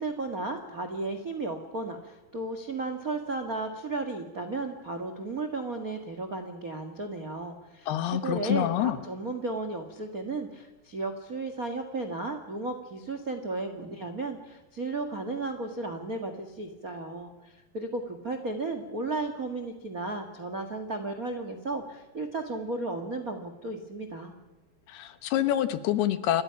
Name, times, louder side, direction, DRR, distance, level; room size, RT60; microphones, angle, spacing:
voice 1, 0.0-24.3, right 3 dB, 65° right, 6 dB, 0.8 m, -34 dB
voice 2, 7.9-9.0 24.9-26.4, left 11 dB, 75° left, 12 dB, 3.0 m, -27 dB
28.5 x 22.0 x 5.9 m, 1.1 s
omnidirectional pair, 4.8 m